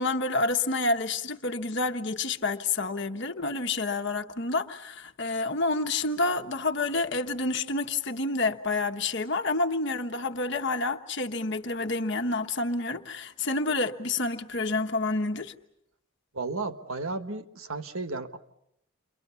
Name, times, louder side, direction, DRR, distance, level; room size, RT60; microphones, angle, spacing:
voice 1, 0.0-15.5, left 3 dB, 55° left, 1.3 m, -29 dB
voice 2, 16.3-18.4, right 3 dB, 70° right, 1.5 m, -33 dB
29.5 x 24.5 x 7.0 m
head